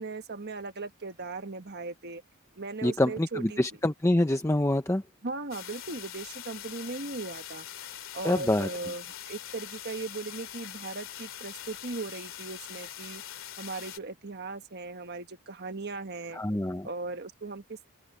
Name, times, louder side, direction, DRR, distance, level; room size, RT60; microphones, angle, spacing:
voice 1, 0.0-2.2 2.6-3.6 5.2-7.7 8.1-13.2 13.6-16.4 16.8-17.9, right 3 dB, 50° right, 1.5 m, -38 dB
voice 2, 2.8-5.0 8.2-8.7 16.3-16.9, left 1 dB, 15° left, 0.7 m, -26 dB
sound 1, 5.5-14.0, left 11 dB, 65° left, 2.9 m, -43 dB
open air
head